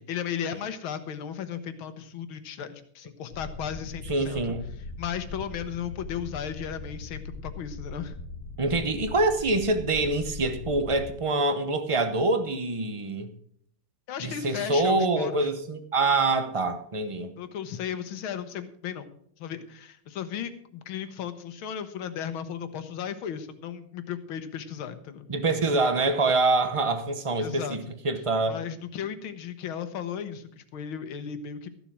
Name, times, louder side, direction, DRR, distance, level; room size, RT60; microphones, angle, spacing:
voice 1, 0.1-4.4 5.0-8.2 14.1-15.5 17.4-19.1 19.4-25.3 27.4-27.8 28.5-31.7, left 8 dB, 85° left, 10 dB, 1.9 m, -35 dB
sound 1, 3.3-11.1, left 2 dB, 70° left, 1.9 m, -40 dB
voice 2, 4.1-4.6 8.6-13.3 14.2-17.3 25.3-28.6, right 2 dB, 55° right, 9 dB, 0.3 m, -25 dB
14.0 x 7.2 x 6.1 m, 0.64 s
omnidirectional pair, 2.2 m